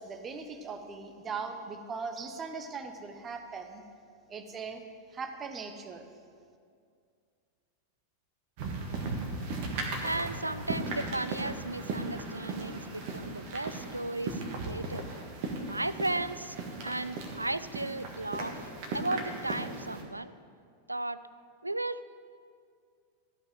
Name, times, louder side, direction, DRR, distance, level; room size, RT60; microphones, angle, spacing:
voice 1, 0.0-3.8 4.3-4.8 5.1-6.1, right 5 dB, 25° right, 7 dB, 0.9 m, -39 dB
sound 1, 8.6-20.0, right 3 dB, 45° right, 1.5 m, -37 dB
voice 2, 10.0-15.1 15.7-16.6 16.8-18.6 18.9-20.3 20.9-21.2 21.6-22.1, right 2 dB, 85° right, 15 dB, 0.3 m, -35 dB
13.0 x 5.6 x 7.7 m, 2.3 s
figure-of-eight pair, 90°, 0 cm